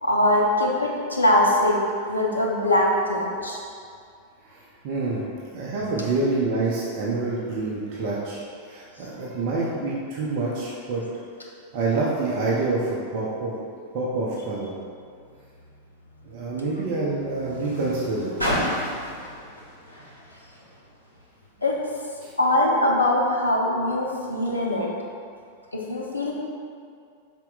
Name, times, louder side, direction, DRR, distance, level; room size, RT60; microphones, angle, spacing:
voice 1, 0.0-1.8 2.1-3.6 21.6-21.8 22.4-24.9 25.7-26.3, left 1 dB, 80° left, -2 dB, 0.4 m, -22 dB
voice 2, 4.4-11.0 11.7-13.6 13.9-14.7 16.2-18.3 22.2-22.3, right 3 dB, 45° right, -5 dB, 0.5 m, -27 dB
Car, 14.8-21.4 22.2-22.3, equal, 90° right, 0.9 m, -34 dB
4.2 x 2.1 x 3.8 m, 2.3 s
figure-of-eight pair, 90°, 0 cm